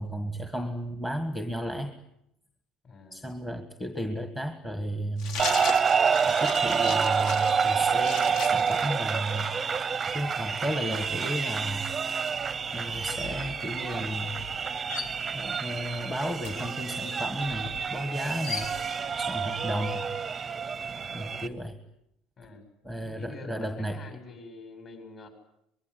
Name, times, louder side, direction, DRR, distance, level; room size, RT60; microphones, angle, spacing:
voice 1, 0.0-1.9 3.1-5.4 6.3-9.5 10.1-11.9 12.7-14.4 15.3-18.7 19.2-20.1 21.1-21.8 22.8-24.0, equal, 5° left, 8 dB, 1.5 m, -33 dB
voice 2, 2.8-3.2 19.4-19.7 22.4-22.6 23.2-25.3, left 3 dB, 30° left, 7 dB, 7.1 m, -46 dB
sound 1, 5.2-9.6, left 6 dB, 50° left, 2.2 m, -37 dB
sound 2, 5.4-21.5, right 6 dB, 15° right, 0.9 m, -28 dB
sound 3, 10.2-10.5 10.8-19.2, left 4 dB, 85° left, 3.5 m, -43 dB
24.5 x 21.5 x 9.9 m, 0.80 s
cardioid pair, 175°, 0 cm